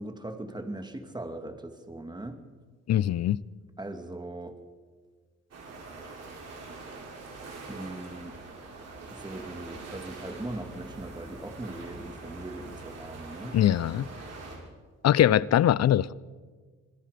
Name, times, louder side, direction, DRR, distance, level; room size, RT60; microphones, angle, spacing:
voice 1, 0.0-2.4 3.8-4.6 7.7-8.4 9.1-13.6, right 1 dB, 15° right, 2.4 m, -39 dB
voice 2, 2.9-3.4 13.5-14.1 15.0-16.1, left 11 dB, 60° left, 0.6 m, -22 dB
sound 1, 5.5-14.6, right 3 dB, 55° right, 7.2 m, -43 dB
26.5 x 21.5 x 5.2 m
cardioid pair, 90°, 30 cm